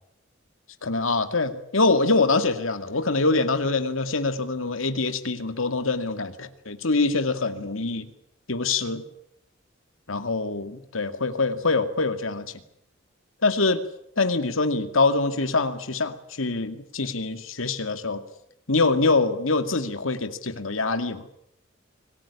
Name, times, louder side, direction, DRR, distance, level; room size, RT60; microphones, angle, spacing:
voice 1, 0.8-8.1 8.5-9.0 10.1-12.5 13.4-13.8 14.2-18.2 18.7-21.2, left 3 dB, 85° left, 9 dB, 2.2 m, -24 dB
25.5 x 17.5 x 9.9 m, 0.75 s
head